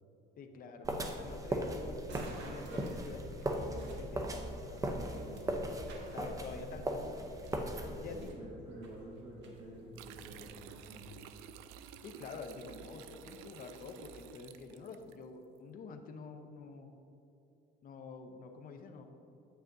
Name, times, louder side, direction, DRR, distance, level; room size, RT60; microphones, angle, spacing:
voice 1, 0.4-0.9 1.2-5.2 6.1-7.2 8.0-8.2 12.0-16.9 17.8-19.0, left 4 dB, 45° left, 5 dB, 0.7 m, -48 dB
sound 1, 0.8-8.3, right 1 dB, 15° right, 0.6 m, -38 dB
sound 2, 2.1-10.8, right 2 dB, 65° right, 1.4 m, -54 dB
voice 2, 4.9-5.6 7.8-11.1, right 1 dB, 35° right, -6 dB, 1.4 m, -49 dB
sound 3, 9.9-15.2, right 9 dB, 90° right, 0.4 m, -52 dB
9.2 x 8.5 x 2.6 m, 2.9 s
cardioid pair, 135°, 20 cm